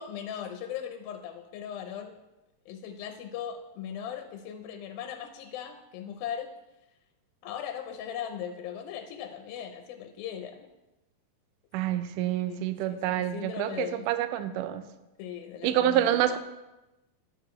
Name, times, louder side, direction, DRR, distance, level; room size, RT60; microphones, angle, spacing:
voice 1, 0.0-2.1 2.7-6.5 7.4-10.7 12.5-14.1 15.2-16.4, left 9 dB, 85° left, 6 dB, 2.4 m, -38 dB
voice 2, 11.7-14.8 15.6-16.4, right 12 dB, 80° right, 10 dB, 2.0 m, -27 dB
11.5 x 7.4 x 3.1 m, 1.0 s
omnidirectional pair, 4.1 m